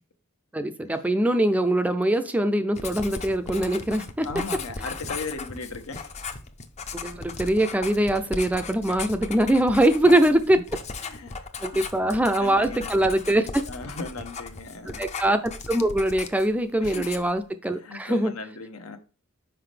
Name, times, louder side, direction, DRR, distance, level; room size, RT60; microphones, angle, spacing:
voice 1, 0.5-4.3 7.0-10.6 11.6-13.6 14.8-15.4 15.7-18.3, right 1 dB, 5° right, 0.4 m, -22 dB
Writing, 2.8-16.6 16.8-17.4, left 4 dB, 30° left, 0.6 m, -37 dB
voice 2, 4.2-6.3 10.0-10.1 11.0-11.5 11.7-13.0 13.7-15.1 16.8-17.1 17.7-19.0, left 3 dB, 75° left, 1.0 m, -37 dB
5.7 x 5.2 x 3.3 m
head